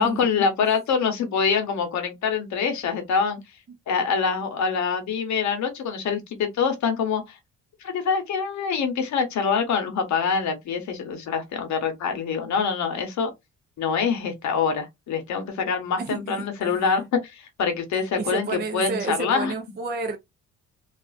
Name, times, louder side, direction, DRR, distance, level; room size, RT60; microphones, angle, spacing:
voice 1, 0.0-3.4 3.9-7.4 7.8-13.3 13.8-19.5, left 6 dB, 70° left, 0.9 m, -25 dB
voice 2, 18.2-20.2, right 4 dB, 35° right, 0.5 m, -30 dB
2.4 x 2.3 x 2.3 m
cardioid pair, 90°, 30 cm